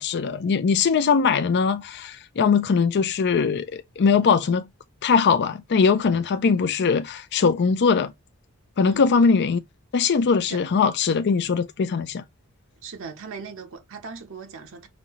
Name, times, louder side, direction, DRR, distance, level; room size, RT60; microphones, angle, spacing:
voice 1, 0.0-4.7 5.0-8.1 8.8-9.6 9.9-12.2, left 5 dB, 50° left, 0.4 m, -21 dB
voice 2, 12.8-14.9, right 5 dB, 65° right, 0.8 m, -39 dB
5.1 x 2.7 x 2.9 m
head